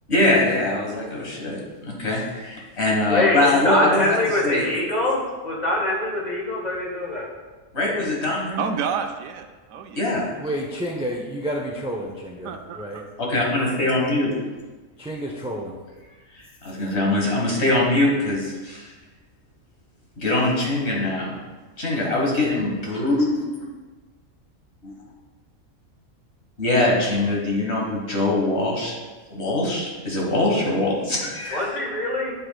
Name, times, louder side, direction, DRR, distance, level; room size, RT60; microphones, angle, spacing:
voice 1, 0.1-4.2 4.4-4.7 7.7-8.6 10.0-10.3 13.3-14.4 16.4-18.8 20.2-21.4 21.8-23.5 24.8-24.9 26.6-28.9 29.3-31.7, left 2 dB, 50° left, -2 dB, 1.8 m, -22 dB
voice 2, 3.0-7.3 31.5-32.3, left 1 dB, 30° left, -2 dB, 1.5 m, -23 dB
voice 3, 8.6-10.0 12.4-13.3, right 7 dB, 75° right, 6 dB, 1.0 m, -30 dB
voice 4, 10.4-13.0 15.0-15.7, equal, 10° right, -1 dB, 0.3 m, -30 dB
8.5 x 7.8 x 2.3 m, 1.3 s
omnidirectional pair, 1.5 m